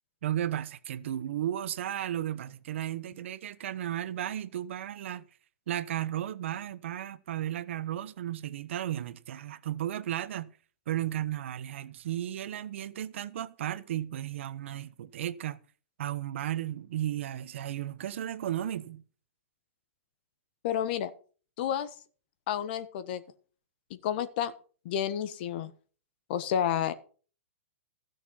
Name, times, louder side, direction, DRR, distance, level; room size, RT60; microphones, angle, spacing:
voice 1, 0.2-5.3 5.7-10.5 10.9-15.6 16.0-19.0, right 12 dB, 60° right, 1.0 m, -34 dB
voice 2, 20.6-21.1 21.6-21.9 22.5-23.2 23.9-24.5 24.8-25.7 26.3-26.9, left 9 dB, 45° left, 1.3 m, -30 dB
15.5 x 6.7 x 5.6 m
hypercardioid pair, 155°, 7 cm